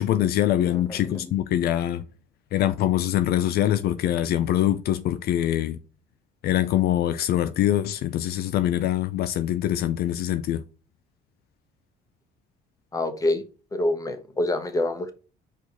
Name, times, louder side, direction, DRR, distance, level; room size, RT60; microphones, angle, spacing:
voice 1, 0.0-2.0 2.5-5.8 6.4-10.6, left 12 dB, 70° left, 0.5 m, -24 dB
voice 2, 0.6-1.2 12.9-13.4 13.7-15.1, left 1 dB, 20° left, 1.1 m, -27 dB
4.9 x 4.4 x 5.2 m
cardioid pair, 110°, 17 cm